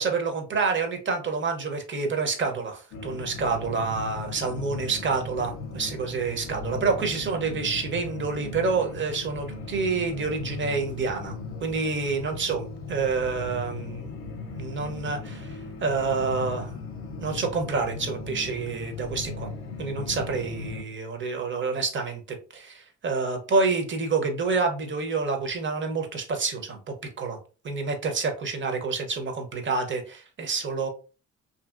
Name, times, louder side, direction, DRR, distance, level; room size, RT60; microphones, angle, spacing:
voice 1, 0.0-11.4 11.6-14.1 14.5-16.8 17.2-19.5 19.8-27.4 27.6-30.9, right 4 dB, 40° right, 5 dB, 0.8 m, -28 dB
sound 1, 2.9-20.8, left 3 dB, 45° left, 0.6 m, -37 dB
2.7 x 2.7 x 2.4 m, 0.35 s
cardioid pair, 90°, 30 cm